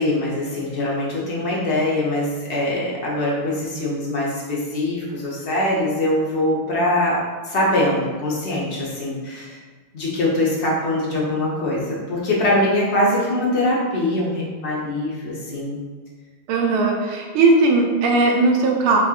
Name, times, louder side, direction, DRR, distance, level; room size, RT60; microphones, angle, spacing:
voice 1, 0.0-9.6 9.9-15.8, left 1 dB, 80° left, -5 dB, 0.6 m, -23 dB
voice 2, 16.5-19.0, right 3 dB, 80° right, 1 dB, 1.5 m, -18 dB
6.4 x 2.8 x 2.4 m, 1.4 s
omnidirectional pair, 2.4 m